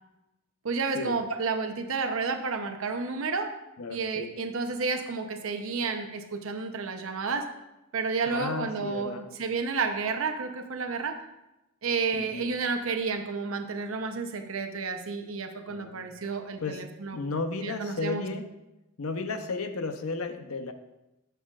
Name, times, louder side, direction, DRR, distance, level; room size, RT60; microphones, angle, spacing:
voice 1, 0.6-3.5 3.9-7.5 7.9-11.2 11.8-17.2 17.6-18.2, right 4 dB, 75° right, 6 dB, 0.8 m, -31 dB
voice 2, 3.8-4.3 8.2-9.3 12.1-12.6 15.7-16.1 16.6-16.9 17.1-18.5 19.0-20.7, left 3 dB, 85° left, 7 dB, 0.7 m, -34 dB
11.0 x 6.9 x 2.4 m, 0.95 s
head